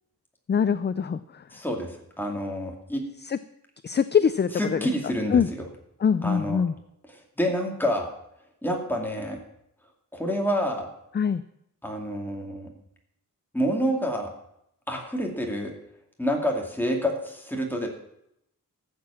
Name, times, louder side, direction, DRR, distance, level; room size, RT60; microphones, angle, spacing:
voice 1, 0.5-1.2 3.3-3.4 3.8-4.9 5.3-5.5 6.0-6.7 11.1-11.4, left 7 dB, 30° left, 14 dB, 0.4 m, -23 dB
voice 2, 1.5-3.0 4.5-5.7 6.2-6.6 7.1-8.1 8.6-9.4 10.1-10.9 11.8-12.7 13.5-14.3 14.9-15.7 16.2-17.9, equal, 5° left, 1 dB, 2.4 m, -28 dB
14.0 x 7.7 x 7.3 m, 0.79 s
wide cardioid pair, 160°, 34 cm